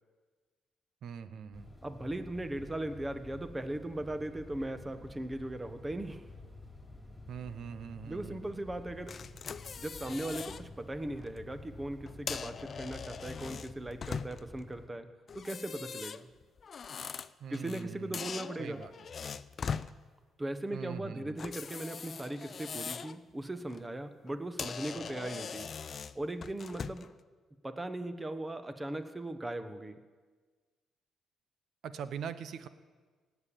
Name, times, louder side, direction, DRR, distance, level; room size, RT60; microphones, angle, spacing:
voice 1, 1.0-1.7 7.3-8.4 17.4-18.2 18.6-18.9 20.7-21.4 31.8-32.7, right 7 dB, 70° right, 12 dB, 0.9 m, -42 dB
sound 1, 1.5-14.9, left 2 dB, 10° left, 3.1 m, -51 dB
voice 2, 1.8-6.3 8.1-9.2 9.8-16.3 17.5-18.9 20.4-25.7 26.1-27.1 27.6-30.0, right 1 dB, 15° right, 10 dB, 1.2 m, -38 dB
sound 2, 9.1-10.6 11.1-11.3 12.1-14.6 15.3-17.9 18.1-19.9 21.4-23.2 23.6-23.8 24.3-24.4 24.6-27.1, left 6 dB, 45° left, 0.5 m, -41 dB
18.0 x 7.2 x 8.6 m, 1.4 s
cardioid pair, 90°, 0 cm